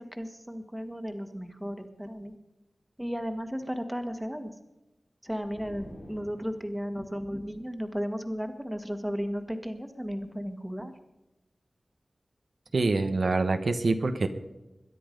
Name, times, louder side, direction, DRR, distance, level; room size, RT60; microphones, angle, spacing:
voice 1, 0.0-2.3 3.0-4.5 5.2-10.9, equal, 5° right, 7 dB, 1.6 m, -34 dB
sound 1, 5.4-7.0, left 1 dB, 80° left, 7.5 m, -49 dB
voice 2, 12.7-14.3, right 3 dB, 70° right, 7 dB, 1.0 m, -25 dB
22.0 x 10.0 x 5.3 m, 0.98 s
wide cardioid pair, 80°, 0 cm